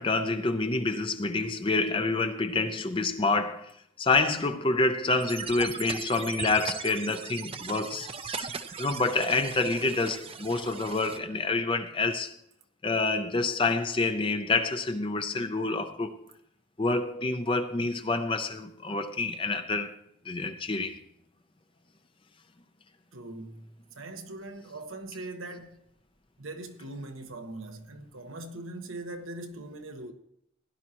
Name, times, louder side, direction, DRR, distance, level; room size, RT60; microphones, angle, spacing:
voice 1, 0.0-3.7 4.0-8.5 8.8-12.3 12.8-16.2 16.8-19.9 20.3-21.0, left 3 dB, 25° left, 0.6 m, -28 dB
sound 1, 5.2-11.2, right 5 dB, 30° right, 0.5 m, -38 dB
voice 2, 23.1-25.8 26.4-30.1, right 2 dB, 90° right, 1.3 m, -41 dB
16.5 x 11.0 x 3.0 m
head